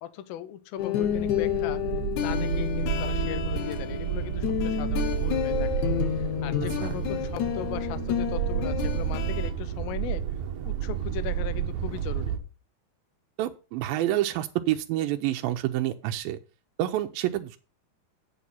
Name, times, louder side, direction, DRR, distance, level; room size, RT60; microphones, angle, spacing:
voice 1, 0.0-1.8 2.2-5.7 6.2-10.3 10.6-12.4, left 11 dB, 85° left, 14 dB, 2.6 m, -38 dB
sound 1, 0.8-9.5, left 11 dB, 70° left, 2.1 m, -30 dB
sound 2, 1.0-12.4, right 9 dB, 65° right, 2.0 m, -31 dB
voice 2, 13.4-16.4 16.8-17.6, right 13 dB, 85° right, 6 dB, 2.4 m, -28 dB
8.4 x 6.8 x 5.4 m, 0.34 s
omnidirectional pair, 4.1 m